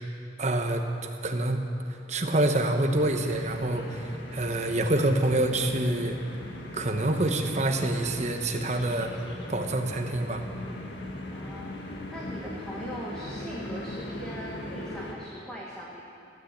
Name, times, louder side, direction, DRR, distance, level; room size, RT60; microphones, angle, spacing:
voice 1, 0.4-1.7 2.1-6.2 6.7-9.1 9.5-10.4, right 1 dB, 40° right, 4 dB, 1.1 m, -27 dB
sound 1, 2.9-15.1, left 1 dB, 75° left, 1.8 m, -39 dB
voice 2, 11.3-11.8 12.1-16.0, equal, 5° left, -5 dB, 1.5 m, -40 dB
15.0 x 10.5 x 8.2 m, 2.7 s
head